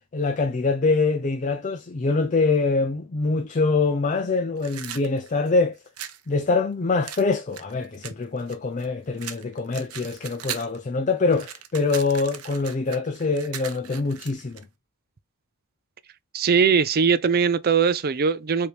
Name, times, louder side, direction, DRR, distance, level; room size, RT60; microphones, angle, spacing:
voice 1, 0.1-5.8 6.3-14.6, left 3 dB, 35° left, 0.5 m, -24 dB
sound 1, 4.6-6.2 7.1-8.9 9.2-10.8 11.1-14.6, right 9 dB, 90° right, 0.7 m, -38 dB
voice 2, 16.3-18.7, right 6 dB, 45° right, 0.5 m, -20 dB
4.8 x 2.9 x 3.2 m
head